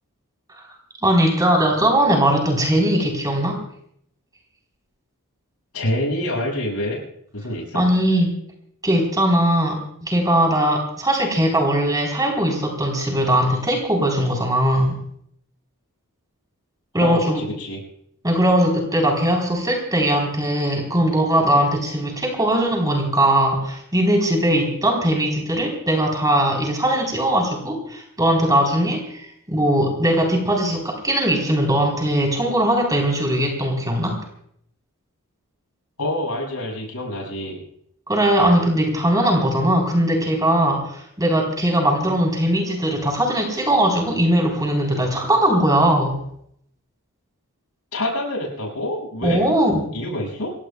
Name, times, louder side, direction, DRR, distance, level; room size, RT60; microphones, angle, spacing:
voice 1, 1.0-3.6 7.7-8.3 8.8-15.0 16.9-17.4 18.2-34.2 38.1-46.2 49.2-49.9, right 1 dB, 15° right, 1 dB, 4.1 m, -20 dB
voice 2, 5.7-7.0 7.3-7.8 17.0-17.8 36.0-37.7 47.9-49.4 49.9-50.5, left 1 dB, 85° left, -2 dB, 6.9 m, -26 dB
28.0 x 17.5 x 2.4 m, 0.68 s
head